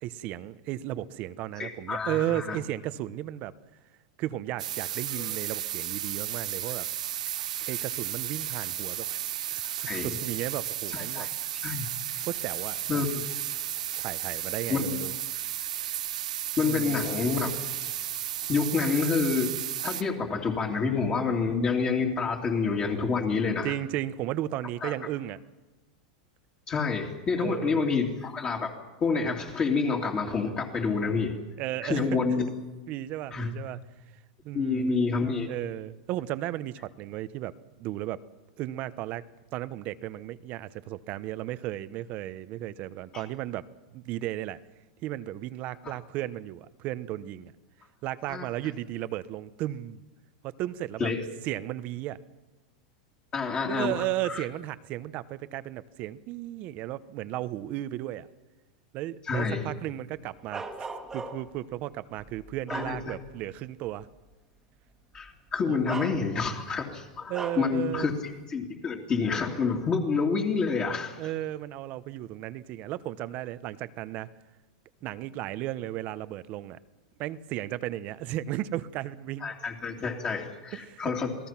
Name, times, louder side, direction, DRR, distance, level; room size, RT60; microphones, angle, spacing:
voice 1, 0.0-3.5 4.2-6.9 7.7-9.1 9.8-11.3 12.3-13.0 14.0-15.1 16.6-17.0 23.6-25.4 27.4-27.9 31.6-32.2 32.9-33.8 34.4-34.9 35.5-37.5 37.8-38.2 38.6-39.2 39.5-43.7 43.9-44.6 45.0-47.5 48.0-50.0 50.4-51.1 51.4-52.2 53.7-58.3 58.9-64.1 65.7-66.0 67.3-68.1 71.2-74.3 75.0-76.8 77.2-79.5 80.7-81.1, right 14 dB, 45° right, 15 dB, 0.9 m, -34 dB
voice 2, 1.6-2.6 5.2-5.3 9.8-10.2 10.9-11.3 11.6-11.9 12.9-13.2 14.7-14.8 16.6-17.5 18.5-19.6 19.8-23.7 24.8-24.9 26.7-28.7 29.0-31.4 31.8-32.5 33.3-33.5 34.5-35.5 43.1-43.2 45.8-46.0 48.3-48.5 51.0-51.3 53.3-54.4 59.3-59.7 62.7-63.1 65.1-71.2 79.4-81.5, left 5 dB, 25° left, -1 dB, 2.8 m, -28 dB
sound 1, 4.6-20.0, right 11 dB, 90° right, 0.9 m, -34 dB
Bark, 60.5-61.6 62.2-63.4 63.9-64.0 65.1-65.3 65.8-66.6 67.3-67.7, right 3 dB, 10° right, 1.8 m, -38 dB
28.0 x 18.5 x 5.9 m, 1.1 s
supercardioid pair, 135°, 4 cm